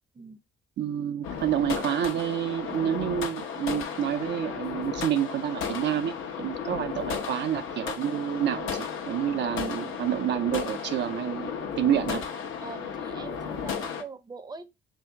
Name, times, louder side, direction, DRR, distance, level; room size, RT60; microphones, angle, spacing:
voice 1, 0.8-12.2, right 10 dB, 65° right, 0.4 m, -28 dB
sound 1, 1.2-14.0, left 6 dB, 85° left, 0.9 m, -34 dB
voice 2, 12.6-14.7, right 4 dB, 20° right, 0.6 m, -43 dB
3.5 x 2.7 x 4.3 m
cardioid pair, 90°, 20 cm